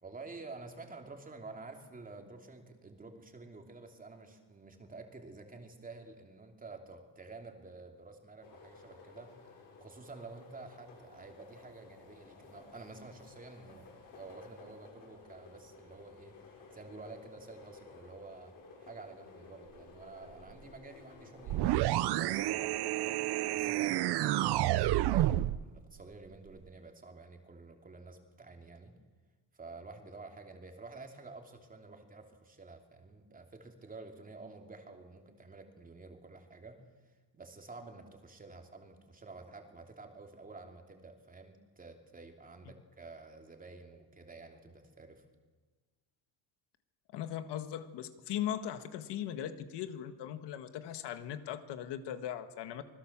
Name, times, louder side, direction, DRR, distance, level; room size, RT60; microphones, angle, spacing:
voice 1, 0.0-9.4 9.8-16.3 16.7-18.5 18.8-23.2 23.5-29.0 29.5-36.8 37.3-45.2, right 3 dB, 20° right, 4 dB, 3.0 m, -50 dB
sound 1, 8.4-25.4, left 4 dB, 45° left, 7.0 m, -55 dB
sound 2, 21.5-25.6, right 15 dB, 60° right, 0.8 m, -29 dB
voice 2, 47.1-52.8, left 10 dB, 65° left, 9 dB, 1.8 m, -39 dB
26.5 x 20.0 x 7.4 m, 1.3 s
cardioid pair, 150°, 44 cm